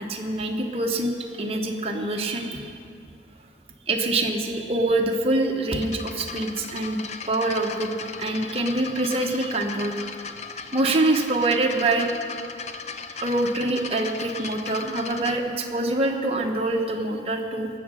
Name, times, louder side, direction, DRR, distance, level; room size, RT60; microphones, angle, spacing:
voice 1, 0.0-2.7 3.9-7.0 7.3-7.9 8.2-9.9 10.7-12.1 13.2-17.7, right 2 dB, 35° right, 2 dB, 1.1 m, -25 dB
sound 1, 5.8-15.3, left 5 dB, 40° left, 0.6 m, -37 dB
19.0 x 7.4 x 6.3 m, 2.3 s
head